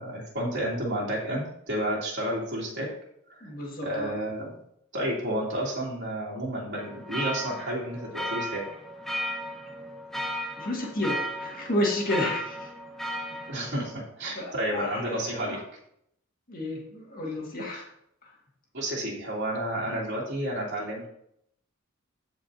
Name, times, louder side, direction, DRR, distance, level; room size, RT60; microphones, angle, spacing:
voice 1, 0.0-2.9 3.3-3.5 3.8-4.5 4.9-8.6 13.5-15.6 18.7-21.1, right 1 dB, 55° right, -4 dB, 2.9 m, -31 dB
voice 2, 3.4-4.2 10.6-12.7 13.3-13.5 14.4-15.6 16.5-17.9 18.2-18.3, left 1 dB, 45° left, -2 dB, 1.9 m, -31 dB
sound 1, 6.8-13.9, equal, ahead, 1.0 m, -35 dB
13.5 x 5.0 x 2.8 m, 0.74 s
head